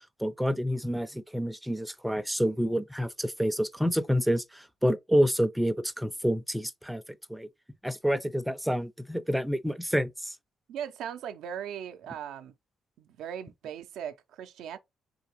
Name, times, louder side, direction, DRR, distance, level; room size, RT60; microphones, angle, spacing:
voice 1, 0.2-7.0 7.3-7.5 7.8-10.4, equal, ahead, 0.4 m, -28 dB
voice 2, 10.7-12.5 13.0-14.8, right 9 dB, 85° right, 0.4 m, -38 dB
3.8 x 3.3 x 2.9 m
cardioid pair, 90°, 0 cm